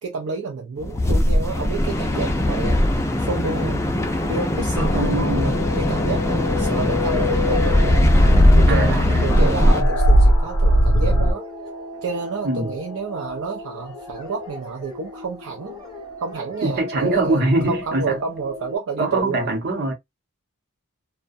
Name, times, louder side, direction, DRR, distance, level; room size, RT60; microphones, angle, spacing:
voice 1, 0.0-2.8 3.2-3.8 4.3-8.1 8.5-11.4 12.0-15.8 16.2-19.5, right 4 dB, 65° right, 0.5 m, -30 dB
sound 1, 0.8-9.8, left 1 dB, 10° left, 0.4 m, -20 dB
sound 2, 4.8-11.3, equal, 75° left, 0.7 m, -20 dB
voice 2, 4.9-5.6 8.7-9.9 12.4-12.7 16.6-18.2 19.0-19.9, right 2 dB, 50° right, 0.8 m, -23 dB
sound 3, 6.8-18.8, left 1 dB, 20° right, 0.9 m, -36 dB
2.4 x 2.1 x 2.6 m
head